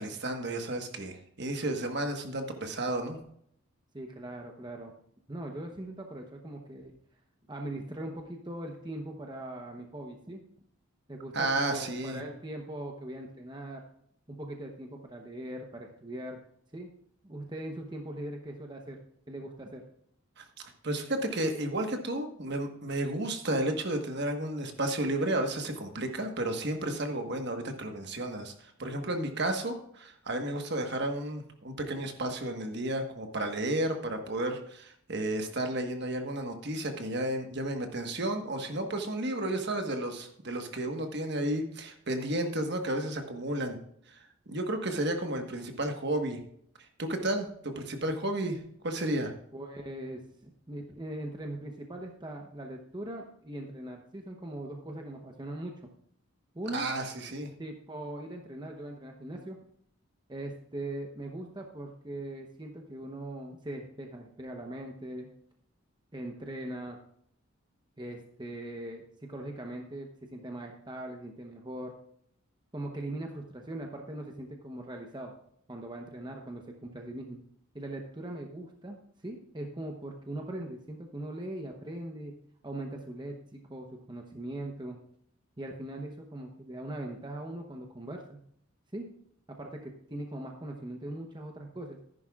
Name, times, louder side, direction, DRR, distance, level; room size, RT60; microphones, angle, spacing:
voice 1, 0.0-3.2 11.3-12.2 20.4-20.5 20.8-43.8 44.1-46.4 46.8-49.3 56.7-57.5, right 1 dB, 50° right, 5 dB, 1.3 m, -32 dB
voice 2, 3.9-4.9 5.3-6.9 7.5-10.4 11.1-13.8 14.3-16.4 16.7-16.9 17.2-19.8 49.5-55.8 56.5-56.9 57.6-59.6 60.3-65.3 66.1-67.0 68.0-71.9 72.7-75.3 75.7-77.4 77.7-79.0 79.2-82.4 82.6-85.0 85.6-88.4 88.9-89.1 89.5-92.0, right 1 dB, 20° right, 2 dB, 0.9 m, -40 dB
13.5 x 11.0 x 2.4 m, 0.67 s
head